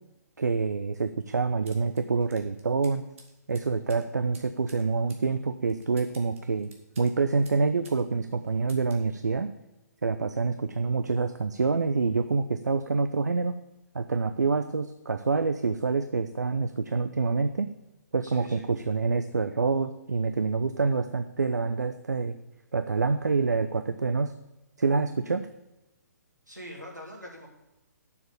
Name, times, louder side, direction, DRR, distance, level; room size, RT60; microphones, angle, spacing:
voice 1, 0.4-3.1 3.5-6.7 7.0-9.5 10.0-13.6 13.9-17.7 18.1-22.4 22.7-24.3 24.8-25.5, right 4 dB, 70° right, 10 dB, 0.6 m, -27 dB
sound 1, 1.7-8.0 8.3-9.1, right 3 dB, 50° right, 2.3 m, -54 dB
voice 2, 18.2-18.7 26.5-27.5, equal, 90° right, -1 dB, 3.4 m, -43 dB
7.6 x 7.0 x 8.3 m, 0.95 s
figure-of-eight pair, 130°, 9 cm